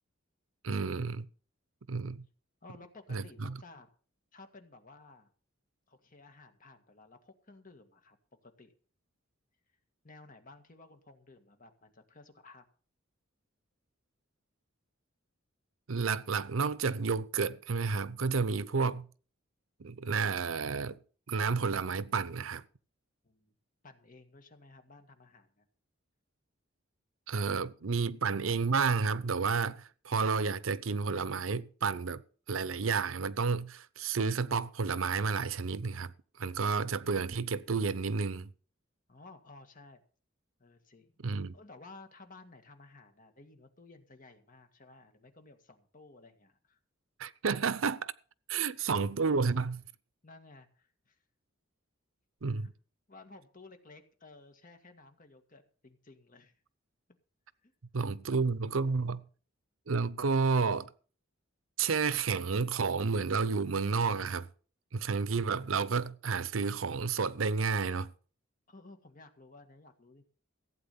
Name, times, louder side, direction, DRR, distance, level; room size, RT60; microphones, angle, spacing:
voice 1, 0.6-1.3 1.9-2.3 3.1-3.6 15.9-19.1 19.8-21.0 21.3-22.6 27.3-32.2 32.5-36.1 36.4-38.5 41.2-41.5 47.2-48.1 48.5-49.8 52.4-52.7 57.9-59.2 59.9-60.9 61.8-64.5 64.9-68.1, right 5 dB, 80° right, 0.7 m, -31 dB
voice 2, 2.6-3.9 4.3-5.3 5.9-8.2 8.4-8.7 10.0-12.6 23.2-23.5 23.8-25.6 39.1-40.0 40.6-41.2 41.5-46.8 50.2-51.2 52.5-52.7 53.1-56.6 57.6-57.7 68.7-70.2, left 3 dB, 40° left, 1.9 m, -55 dB
15.5 x 8.6 x 5.7 m
head